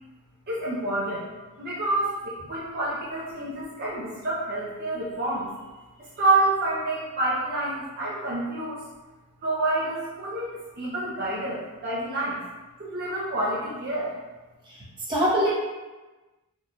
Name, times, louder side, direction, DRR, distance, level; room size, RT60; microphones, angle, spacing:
voice 1, 0.5-1.3 1.6-5.5 6.0-8.8 9.4-12.4 12.8-14.1, right 2 dB, 45° right, -7 dB, 0.7 m, -28 dB
voice 2, 14.6-15.5, equal, 20° right, -8 dB, 1.0 m, -24 dB
4.5 x 2.7 x 2.3 m, 1.2 s
head